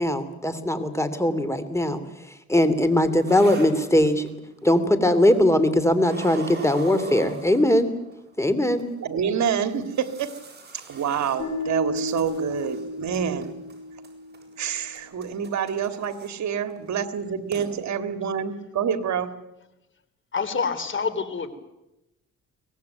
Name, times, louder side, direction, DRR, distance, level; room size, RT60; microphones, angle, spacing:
voice 1, 0.0-2.0 2.5-4.3 4.6-7.9 8.4-8.8, left 1 dB, 10° left, 11 dB, 2.9 m, -20 dB
sound 1, 2.6-4.5 5.2-5.7 6.0-8.1 8.8-8.9 9.4-12.9 13.1-13.8 14.0-16.3 16.7-16.9 17.2-17.3 17.5-17.7, right 3 dB, 35° right, 7.9 m, -42 dB
voice 2, 9.0-10.4 10.7-13.5 14.6-19.3, right 7 dB, 65° right, 9 dB, 2.0 m, -27 dB
sound 2, 11.4-14.6, left 1 dB, 75° left, 7.9 m, -32 dB
voice 3, 20.3-21.6, left 5 dB, 40° left, 12 dB, 3.4 m, -27 dB
24.0 x 19.0 x 9.4 m, 0.93 s
cardioid pair, 90°, 30 cm